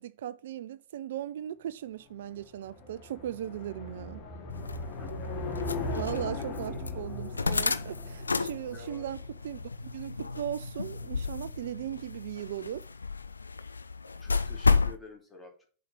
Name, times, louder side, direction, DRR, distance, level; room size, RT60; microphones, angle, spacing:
voice 1, 0.0-4.2 5.9-9.2 9.4-12.9, right 11 dB, 60° right, 0.3 m, -38 dB
sound 1, 2.0-9.4, left 3 dB, 45° left, 2.8 m, -39 dB
sound 2, 4.5-15.0, left 4 dB, 80° left, 0.5 m, -32 dB
voice 2, 4.8-5.3 5.8-6.2 6.5-7.0 8.7-9.1 14.2-15.7, left 2 dB, 10° left, 2.8 m, -50 dB
7.1 x 5.0 x 7.2 m
figure-of-eight pair, 90°, 0 cm